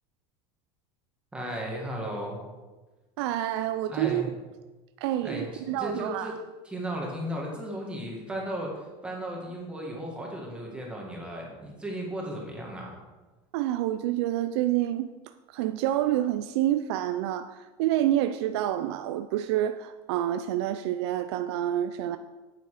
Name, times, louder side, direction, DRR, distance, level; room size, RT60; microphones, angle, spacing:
voice 1, 1.3-2.4 3.9-4.3 5.2-6.3 6.6-12.9, right 1 dB, 5° right, -2 dB, 1.9 m, -35 dB
voice 2, 3.2-4.2 5.0-6.3 13.5-15.1 15.5-22.2, right 12 dB, 80° right, 10 dB, 0.5 m, -28 dB
9.2 x 8.3 x 5.0 m, 1.2 s
cardioid pair, 160°, 14 cm